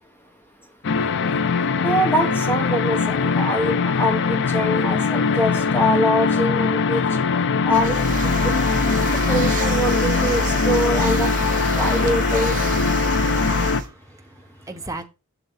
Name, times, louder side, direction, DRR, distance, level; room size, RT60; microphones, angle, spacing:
sound 1, 0.8-13.8, left 5 dB, 55° left, 0.5 m, -21 dB
voice 1, 1.8-7.0 7.6-8.0 8.2-8.4 9.0-11.3 11.8-12.5, equal, 10° left, 1.2 m, -24 dB
sound 2, 7.7-13.9, right 2 dB, 40° right, 1.2 m, -26 dB
voice 2, 13.3-15.0, right 2 dB, 15° right, 0.9 m, -38 dB
6.9 x 6.8 x 4.0 m
head